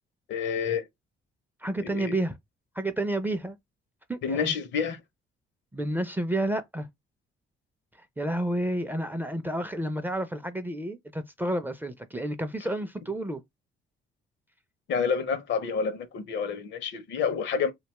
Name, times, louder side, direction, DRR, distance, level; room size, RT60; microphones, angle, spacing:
voice 1, 0.3-0.8 1.8-2.2 4.2-5.0 12.7-12.8 14.9-17.7, left 6 dB, 65° left, 0.6 m, -29 dB
voice 2, 1.6-2.3 2.8-3.6 4.1-4.5 5.7-6.9 8.2-13.4, right 1 dB, 10° right, 0.4 m, -30 dB
2.7 x 2.2 x 2.9 m
cardioid pair, 90°, 20 cm